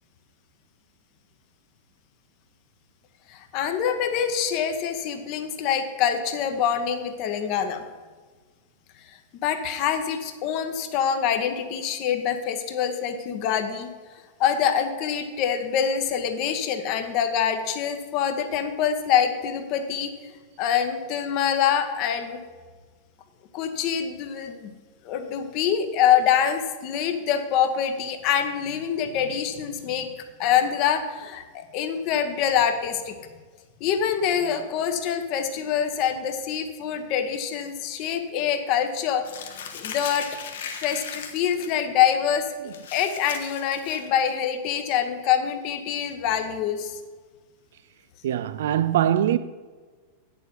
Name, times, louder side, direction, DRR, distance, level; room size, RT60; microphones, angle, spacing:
voice 1, 3.3-7.8 9.4-13.9 14.4-20.1 20.6-22.4 23.5-24.7 25.0-30.1 30.4-33.1 33.8-39.3 39.7-40.3 40.8-47.0, left 8 dB, 40° left, 1.0 m, -25 dB
Crumpling crinkling, 39.2-41.7 42.1-42.3 42.7-44.3, left 7 dB, 60° left, 1.2 m, -38 dB
voice 2, 48.2-49.4, right 11 dB, 60° right, 0.3 m, -22 dB
9.5 x 7.0 x 5.4 m
figure-of-eight pair, 90°, 0 cm